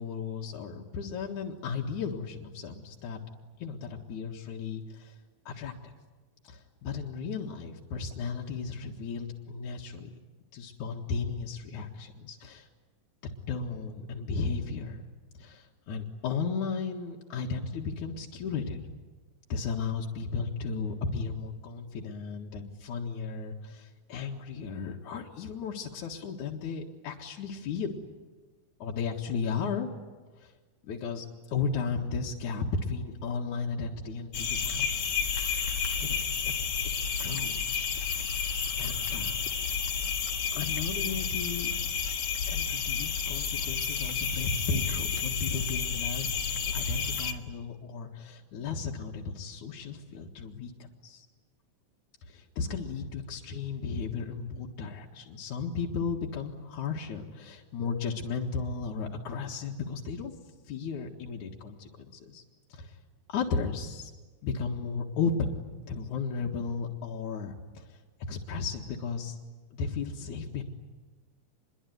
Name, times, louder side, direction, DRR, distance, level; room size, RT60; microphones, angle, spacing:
voice 1, 0.0-3.2 3.6-5.1 5.5-5.7 6.4-10.1 10.5-12.7 13.5-15.0 15.4-18.8 19.5-28.0 28.8-29.9 30.4-30.5 30.8-34.9 35.4-35.5 36.0-36.5 37.2-37.8 38.8-39.4 39.9-40.1 40.5-41.7 42.5-51.3 52.3-60.3 60.7-62.4 62.7-62.9 63.3-64.1 64.4-68.0 68.3-69.4 69.7-70.6, left 5 dB, 75° left, -2 dB, 3.2 m, -35 dB
sound 1, 34.3-47.3, left 6 dB, 55° left, 2.7 m, -31 dB
27.0 x 22.5 x 9.6 m, 1.3 s
omnidirectional pair, 3.5 m